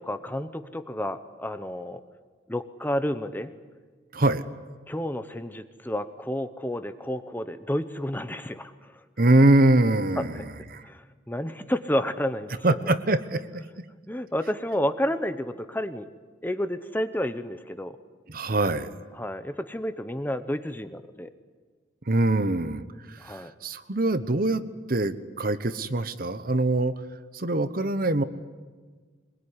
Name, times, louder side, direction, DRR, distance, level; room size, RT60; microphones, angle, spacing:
voice 1, 0.0-2.0 2.5-3.5 4.9-8.9 10.2-10.4 10.8-12.5 14.1-16.1 16.4-18.0 19.2-21.3 23.2-23.5, equal, 10° left, 10 dB, 1.0 m, -30 dB
voice 2, 4.1-4.4 9.2-10.9 12.6-13.6 18.3-18.9 22.1-24.6 24.9-26.9 27.3-28.2, right 2 dB, 45° right, 12 dB, 1.1 m, -23 dB
23.5 x 22.0 x 9.9 m, 1.4 s
head